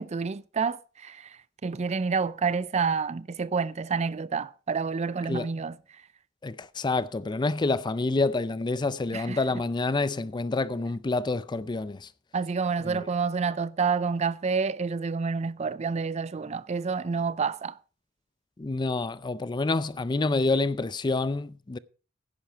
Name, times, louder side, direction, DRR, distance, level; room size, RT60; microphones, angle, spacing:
voice 1, 0.0-6.1 9.1-9.4 12.3-17.8, right 5 dB, 35° right, 0.4 m, -29 dB
voice 2, 6.4-12.1 12.8-13.0 18.6-21.8, left 3 dB, 20° left, 0.4 m, -28 dB
10.5 x 10.5 x 4.6 m
head